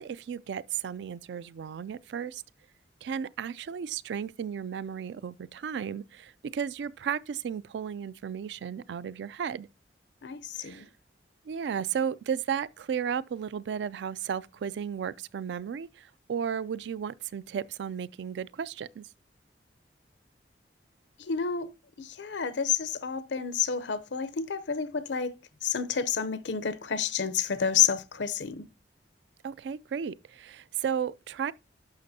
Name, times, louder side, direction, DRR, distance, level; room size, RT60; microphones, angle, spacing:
voice 1, 0.0-2.4 3.0-9.7 10.6-10.9 11.5-19.1 29.4-31.5, right 7 dB, 75° right, 0.3 m, -34 dB
voice 2, 10.2-10.9 21.2-21.7 22.0-25.3 25.6-28.7, left 7 dB, 85° left, 0.7 m, -29 dB
11.5 x 6.0 x 2.7 m
head